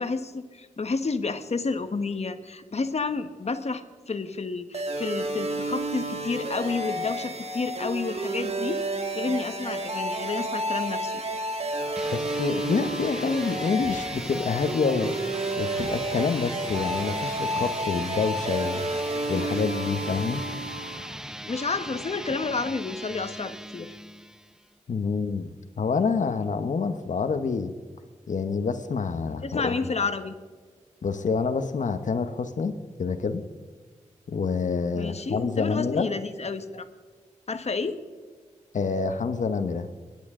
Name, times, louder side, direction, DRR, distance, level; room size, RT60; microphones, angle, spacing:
voice 1, 0.0-8.8 9.1-11.1 21.4-23.9 29.4-30.3 34.9-36.8 37.5-38.0, left 4 dB, 55° left, 9 dB, 1.3 m, -30 dB
sound 1, 4.7-21.2, right 1 dB, 55° right, 1.8 m, -31 dB
sound 2, 11.7-11.8 13.1-13.2 13.8-14.0 14.5-14.6 15.7-16.0 16.6-16.9 17.3-17.4, right 1 dB, 85° right, 3.4 m, -46 dB
sound 3, 11.9-24.6, equal, 5° right, 0.6 m, -39 dB
voice 2, 12.1-15.2 15.6-18.9 19.3-20.4 24.9-27.7 28.3-29.9 31.0-32.7 33.0-33.4 34.3-36.1 38.7-39.9, left 5 dB, 80° left, 9 dB, 1.1 m, -27 dB
29.0 x 10.5 x 3.8 m, 1.5 s
cardioid pair, 55°, 13 cm